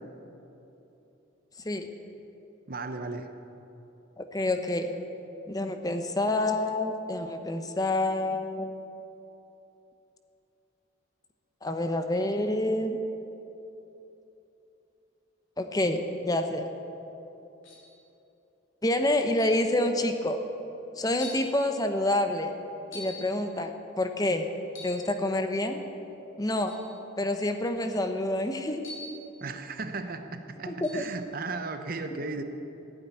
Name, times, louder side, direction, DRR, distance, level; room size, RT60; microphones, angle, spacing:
voice 1, 2.7-3.3 29.4-32.4, right 3 dB, 45° right, 7 dB, 0.9 m, -35 dB
voice 2, 4.2-5.0 5.5-8.7 11.6-13.0 15.6-16.7 18.8-20.4 21.0-22.6 22.9-24.5 24.8-25.8 26.4-26.8 27.2-28.9 30.7-31.0, left 1 dB, 20° left, 6 dB, 0.8 m, -28 dB
sound 1, 17.6-18.0 19.4-19.7 20.5-20.6 21.2-21.5 22.9-23.3 24.7-25.1 26.7-26.9 28.8-29.2 30.8-31.1, left 2 dB, 80° left, 3.2 m, -43 dB
15.5 x 9.0 x 9.6 m, 3.0 s
head